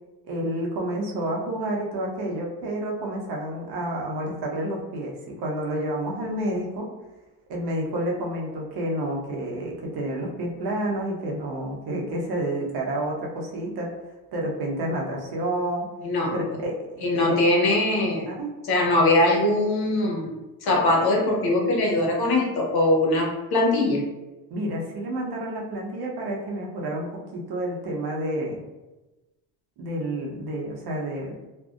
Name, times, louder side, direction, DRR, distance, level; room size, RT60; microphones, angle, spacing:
voice 1, 0.2-6.9 7.5-13.9 14.3-15.8 16.3-17.3 18.3-18.5 24.5-27.1 27.3-28.6 29.8-31.4, right 1 dB, 60° right, -1 dB, 0.8 m, -29 dB
voice 2, 17.0-18.3 18.7-20.3 20.6-24.0, left 2 dB, 55° left, -1 dB, 0.8 m, -21 dB
2.5 x 2.1 x 2.4 m, 1.1 s
supercardioid pair, 70°, 44 cm